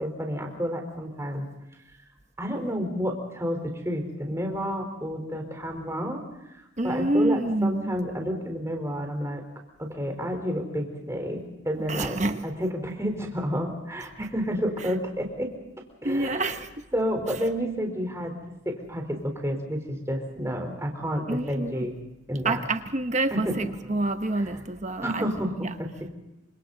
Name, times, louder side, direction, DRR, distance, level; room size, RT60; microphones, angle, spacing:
voice 1, 0.0-1.5 2.4-9.4 9.8-15.5 16.0-16.5 16.9-21.9 22.3-22.6 23.3-24.0 24.4-24.6 25.0-26.1, equal, 15° right, 4.1 m, -30 dB
voice 2, 6.8-8.0 11.9-12.5 14.2-14.3 16.0-16.8 21.3-21.9 22.4-25.3 25.6-25.7, right 2 dB, 35° right, 1.1 m, -27 dB
29.0 x 26.0 x 4.0 m
head